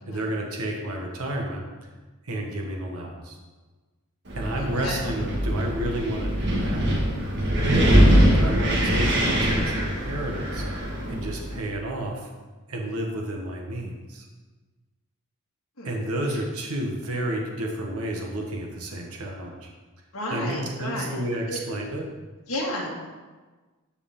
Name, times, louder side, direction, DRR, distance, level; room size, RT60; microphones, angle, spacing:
voice 1, 0.1-1.7 2.2-3.4 4.3-6.8 7.6-12.3 12.7-14.2 15.8-19.7 20.3-22.1, right 1 dB, 75° right, 0 dB, 1.3 m, -31 dB
Wind, 4.3-11.6, equal, 50° right, 1.8 m, -22 dB
voice 2, 4.6-5.0 15.8-15.9 20.1-21.2 21.5-21.6 22.5-22.9, left 1 dB, 65° left, -3 dB, 2.0 m, -32 dB
13.5 x 4.9 x 3.7 m, 1.3 s
head